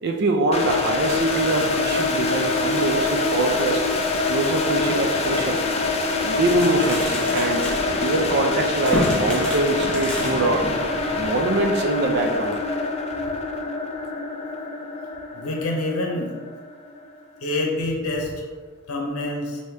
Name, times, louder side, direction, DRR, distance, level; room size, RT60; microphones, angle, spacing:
voice 1, 0.0-3.8 4.3-5.6 6.2-7.7 8.0-10.7 11.2-12.6, right 2 dB, 50° right, 4 dB, 0.4 m, -23 dB
sound 1, 0.5-17.4, left 3 dB, 30° left, 0.4 m, -25 dB
sound 2, 6.3-11.4, equal, 5° left, 0.8 m, -30 dB
voice 2, 15.3-16.3 17.4-18.3 18.9-19.6, left 2 dB, 80° left, 0 dB, 0.7 m, -26 dB
4.7 x 2.8 x 3.2 m, 1.4 s
head